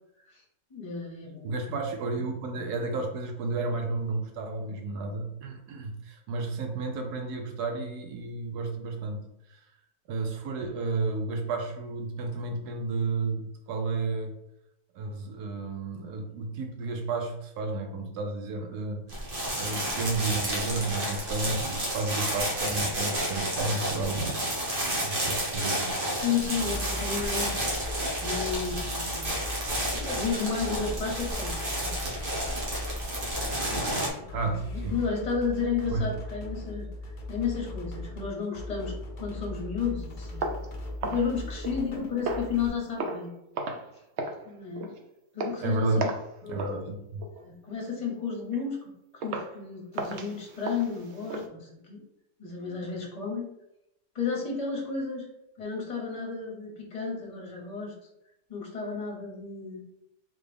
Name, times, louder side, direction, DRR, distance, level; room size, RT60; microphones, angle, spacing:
voice 1, 0.7-1.8 26.2-27.9 28.2-29.4 29.9-32.0 32.3-32.6 34.4-36.9 37.3-40.5 41.0-43.3 44.4-44.9 45.3-46.1 46.4-46.7 47.4-48.8 49.2-52.0 52.4-53.5 54.1-55.3 55.6-57.9 58.5-59.8, left 5 dB, 30° left, -1 dB, 1.0 m, -32 dB
voice 2, 1.4-9.7 10.1-14.3 14.9-24.4 25.0-26.1 34.3-35.0 35.9-36.1 45.6-46.1 46.5-47.3, right 3 dB, 85° right, 4 dB, 1.3 m, -32 dB
sound 1, 19.1-34.1, right 1 dB, 40° right, 1.0 m, -31 dB
sound 2, 26.5-42.7, left 1 dB, 55° left, 0.5 m, -38 dB
sound 3, 40.4-41.9 42.2-42.6 43.0-43.3 43.5-43.9 44.2-44.4 44.7-45.0 45.4-45.6 46.0-46.3 46.6-46.8 47.2-47.4 47.9-48.0 48.5-48.6 49.2-49.5 49.9-51.5, right 2 dB, 70° right, 0.6 m, -34 dB
3.7 x 3.2 x 3.4 m, 0.83 s
omnidirectional pair, 1.6 m